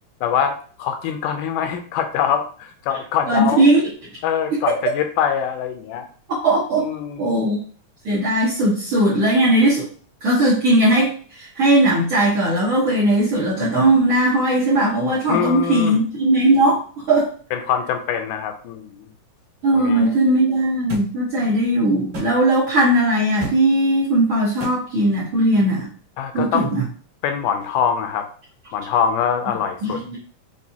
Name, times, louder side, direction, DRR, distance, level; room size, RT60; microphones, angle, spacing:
voice 1, 0.2-3.7 4.2-6.1 6.8-7.4 15.3-16.0 17.5-19.1 19.7-20.1 26.2-26.7 27.2-28.3 28.7-30.0, left 8 dB, 85° left, 6 dB, 2.0 m, -24 dB
voice 2, 3.3-3.9 4.5-4.8 6.4-6.9 7.2-7.6 8.0-9.9 10.2-16.8 17.1-17.3 19.6-25.9 26.3-26.8 29.8-30.2, right 1 dB, 60° right, -8 dB, 1.4 m, -18 dB
sound 1, 20.9-21.1 22.1-22.3 23.4-23.6 24.6-24.8, right 1 dB, 35° right, 1.9 m, -28 dB
5.4 x 2.6 x 2.7 m, 0.44 s
omnidirectional pair, 3.7 m